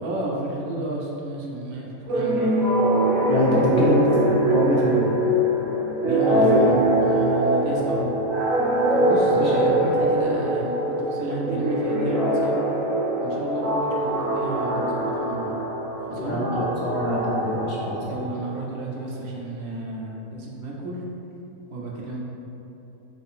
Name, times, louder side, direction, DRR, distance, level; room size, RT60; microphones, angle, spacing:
voice 1, 0.0-2.7 6.0-8.1 8.9-12.6 13.2-15.5 16.1-16.4 18.0-21.0 21.7-22.2, right 2 dB, 80° right, -3 dB, 1.2 m, -31 dB
sound 1, 2.1-18.5, right 1 dB, 55° right, 0.6 m, -23 dB
voice 2, 3.2-5.1 6.5-6.7 9.3-9.6 16.1-18.2, equal, 65° left, -5 dB, 0.8 m, -24 dB
4.6 x 2.6 x 3.2 m, 3.0 s
omnidirectional pair, 1.6 m